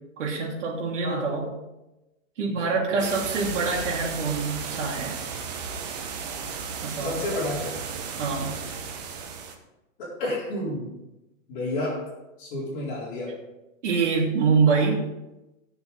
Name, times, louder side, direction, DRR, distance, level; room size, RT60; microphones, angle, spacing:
voice 1, 0.2-1.5 2.4-5.2 6.8-7.2 8.2-8.5 13.8-15.0, right 4 dB, 65° right, -2 dB, 3.2 m, -25 dB
voice 2, 2.6-3.0 7.0-7.8 10.0-10.9 11.5-12.0 12.4-13.3 14.7-14.8, left 1 dB, 40° left, -5 dB, 4.2 m, -31 dB
sound 1, 3.0-9.6, right 6 dB, 30° right, 1.1 m, -34 dB
15.0 x 6.8 x 4.1 m, 0.99 s
hypercardioid pair, 170°, 39 cm